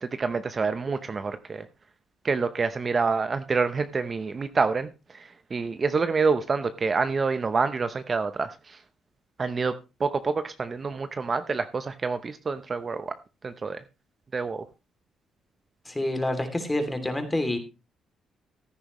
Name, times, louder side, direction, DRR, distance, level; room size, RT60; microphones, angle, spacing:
voice 1, 0.0-1.7 2.2-8.8 9.4-9.7 10.0-13.1 13.4-13.8 14.3-14.7, right 4 dB, 35° right, 11 dB, 0.7 m, -27 dB
voice 2, 15.9-17.6, left 1 dB, 15° left, 6 dB, 2.8 m, -27 dB
15.5 x 9.9 x 3.1 m, 0.28 s
cardioid pair, 90°, 0 cm